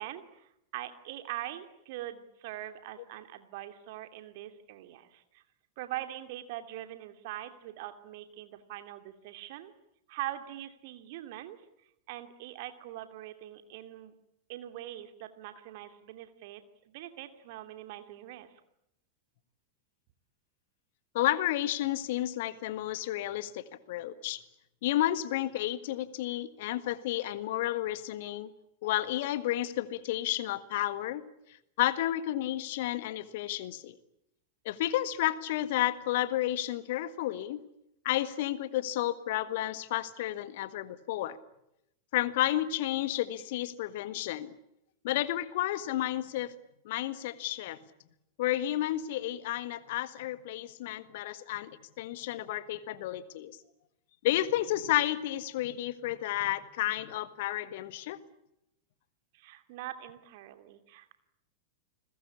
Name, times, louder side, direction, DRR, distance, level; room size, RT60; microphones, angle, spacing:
voice 1, 0.0-5.4 5.8-9.7 10.1-11.6 12.1-14.1 14.5-18.5 59.3-61.1, right 14 dB, 50° right, 8 dB, 2.8 m, -42 dB
voice 2, 21.1-24.4 24.8-28.5 28.8-31.2 31.8-34.0 34.6-37.6 38.0-41.4 42.1-44.5 45.0-46.5 46.8-47.8 48.4-51.7 52.0-53.6 54.2-58.2, left 14 dB, 50° left, 14 dB, 1.7 m, -31 dB
30.0 x 21.0 x 8.6 m, 0.81 s
figure-of-eight pair, 90°, 0 cm